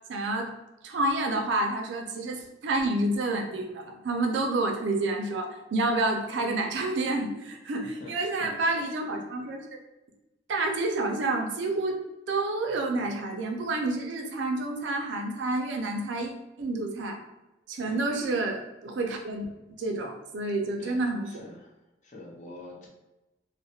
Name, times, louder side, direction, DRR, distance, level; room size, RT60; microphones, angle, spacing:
voice 1, 0.1-0.5 0.8-9.6 10.5-12.0 12.3-16.3 16.6-17.2 17.7-19.5 19.8-21.4, right 2 dB, 80° right, 2 dB, 0.4 m, -29 dB
voice 2, 8.0-8.9 17.8-18.0 20.8-21.7 22.0-22.9, left 2 dB, 40° left, -1 dB, 0.5 m, -46 dB
2.3 x 2.0 x 2.7 m, 1.0 s
head